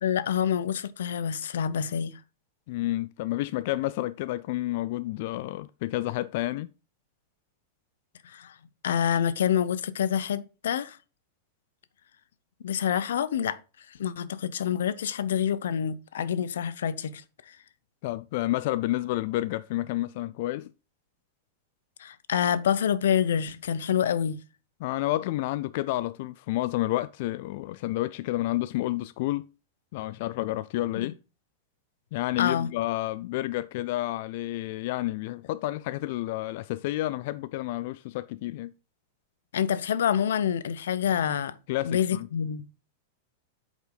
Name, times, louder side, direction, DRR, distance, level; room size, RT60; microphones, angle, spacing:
voice 1, 0.0-2.2 8.2-8.6 8.8-11.0 12.6-13.6 13.9-17.6 22.0-24.4 30.9-31.1 32.4-32.7 39.5-41.6 41.8-42.7, left 9 dB, 90° left, 0.7 m, -27 dB
voice 2, 2.7-6.7 18.0-20.7 24.8-29.4 29.9-31.2 32.1-38.7 41.7-42.3, left 16 dB, 55° left, 0.3 m, -30 dB
8.3 x 5.2 x 3.9 m
supercardioid pair, 150°, 0 cm